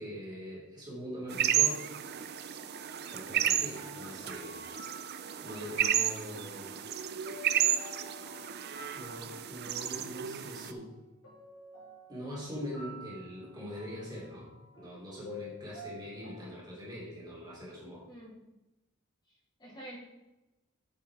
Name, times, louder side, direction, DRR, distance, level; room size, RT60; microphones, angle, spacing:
voice 1, 0.0-1.8 3.1-4.6 5.3-6.8 8.9-10.9 12.1-14.5 14.8-18.0, equal, 20° right, -6 dB, 3.0 m, -42 dB
sound 1, 1.3-10.7, right 10 dB, 50° right, 0.5 m, -32 dB
sound 2, 3.5-16.6, left 1 dB, 80° left, 3.2 m, -51 dB
voice 2, 19.3-20.0, right 1 dB, 20° left, -6 dB, 2.8 m, -48 dB
7.8 x 6.4 x 4.7 m, 0.99 s
head